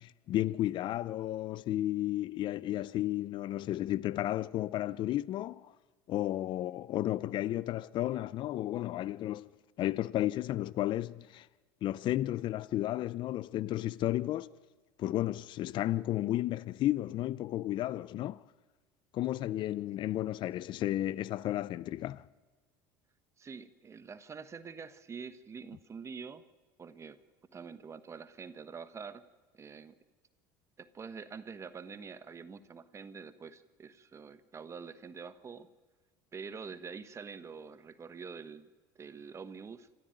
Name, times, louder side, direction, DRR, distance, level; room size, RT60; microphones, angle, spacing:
voice 1, 0.0-5.7 6.1-9.5 9.8-11.5 11.8-14.5 15.0-18.4 19.1-22.3, left 14 dB, 50° left, 0.6 m, -33 dB
voice 2, 23.4-26.4 26.8-27.2 27.5-29.2 29.5-30.0 30.8-35.7 36.3-39.9, right 5 dB, 25° right, 1.3 m, -46 dB
26.5 x 14.0 x 9.2 m
supercardioid pair, 100°, 10 cm